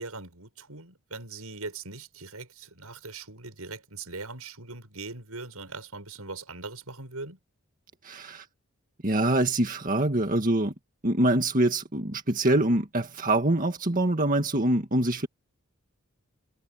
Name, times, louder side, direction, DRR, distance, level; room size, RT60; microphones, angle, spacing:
voice 1, 0.0-7.4, right 3 dB, 90° right, 7.3 m, -40 dB
voice 2, 8.0-8.5 9.0-10.7 11.0-15.3, right 1 dB, 40° right, 1.9 m, -24 dB
head